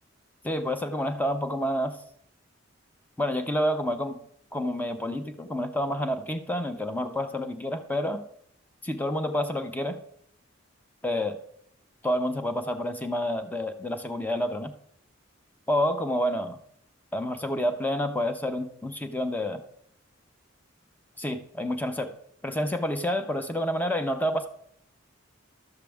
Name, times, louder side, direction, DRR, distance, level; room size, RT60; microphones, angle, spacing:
voice 1, 0.4-2.0 3.2-4.2 4.5-8.2 8.8-10.0 11.0-11.4 12.0-14.7 15.7-16.6 17.1-19.6 21.2-22.1 22.4-24.5, equal, 10° left, 8 dB, 0.7 m, -28 dB
12.0 x 7.4 x 3.5 m, 0.69 s
head